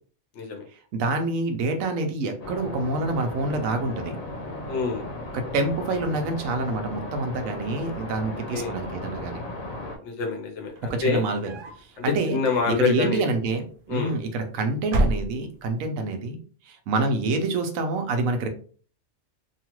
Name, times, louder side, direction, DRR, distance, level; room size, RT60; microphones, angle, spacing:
voice 1, 0.9-4.2 5.3-9.4 10.8-12.4 12.7-16.4 16.7-18.5, right 3 dB, 80° right, 6 dB, 1.0 m, -27 dB
sound 1, 2.4-10.0, left 1 dB, 90° left, 1.1 m, -36 dB
voice 2, 4.7-5.1 8.5-8.7 10.0-11.2 12.3-13.2 13.9-14.1, left 5 dB, 60° left, 2 dB, 1.0 m, -26 dB
sound 2, 10.7-11.9 12.4-13.0 14.0-14.5 14.8-15.8, right 1 dB, 60° right, 0.6 m, -29 dB
2.9 x 2.3 x 2.9 m, 0.43 s
omnidirectional pair, 1.4 m